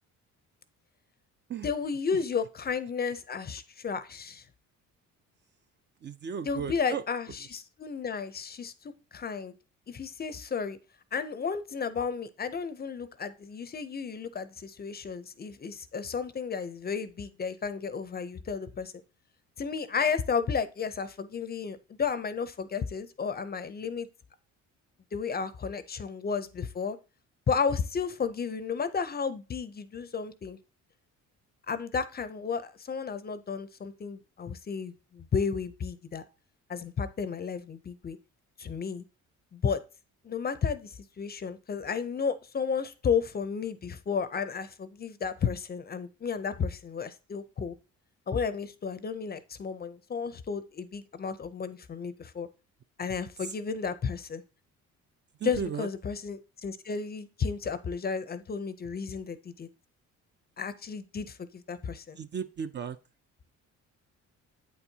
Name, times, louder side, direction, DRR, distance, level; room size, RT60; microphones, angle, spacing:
voice 1, 1.6-4.5 6.4-9.5 9.9-10.8 11.1-18.9 19.6-24.1 25.1-27.0 27.5-30.6 31.7-36.2 36.7-38.2 38.6-39.0 39.5-39.8 40.2-47.7 48.3-52.5 53.0-54.4 55.4-59.7 60.6-62.2, left 6 dB, 30° left, 0.5 m, -33 dB
voice 2, 6.0-7.6 53.4-53.5 55.4-55.9 62.2-63.0, right 7 dB, 35° right, 0.4 m, -36 dB
8.3 x 4.5 x 2.7 m
cardioid pair, 85°, 32 cm